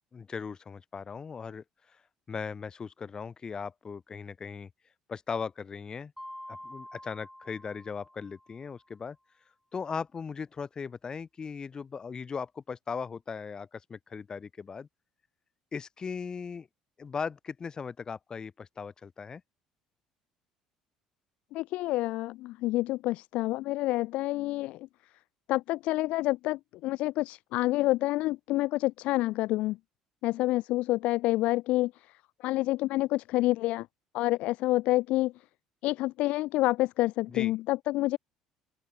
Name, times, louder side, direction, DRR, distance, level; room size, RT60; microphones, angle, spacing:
voice 1, 0.1-1.6 1.9-2.0 2.3-4.7 5.1-6.1 6.5-9.2 9.7-14.9 15.7-16.7 17.0-19.4 37.3-37.5, left 5 dB, 30° left, 5.3 m, -38 dB
Mallet percussion, 6.2-8.8, left 1 dB, 5° left, 5.9 m, -47 dB
voice 2, 21.5-24.9 25.5-29.8 30.2-33.9 34.1-35.3 35.8-38.2, left 18 dB, 55° left, 0.9 m, -28 dB
open air
figure-of-eight pair, 55°, 2 cm